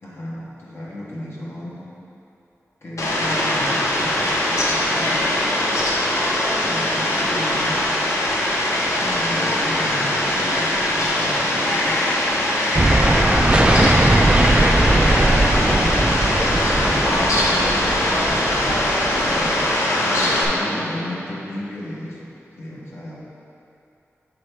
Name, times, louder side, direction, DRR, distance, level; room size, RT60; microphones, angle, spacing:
voice 1, 0.0-1.9 2.8-5.5 6.6-7.8 9.0-12.0 12.8-16.0 16.7-18.6 19.2-23.2, left 1 dB, 55° left, -6 dB, 1.1 m, -34 dB
Fowl, 3.0-20.5, left 1 dB, 80° left, 0.8 m, -21 dB
voice 2, 6.5-6.9 14.6-15.8 16.2-17.2 18.9-20.6, equal, 20° left, -6 dB, 0.9 m, -33 dB
sound 1, 12.7-19.7, right 2 dB, 20° right, 0.3 m, -19 dB
7.1 x 3.3 x 4.6 m, 2.9 s
wide cardioid pair, 80°, 5 cm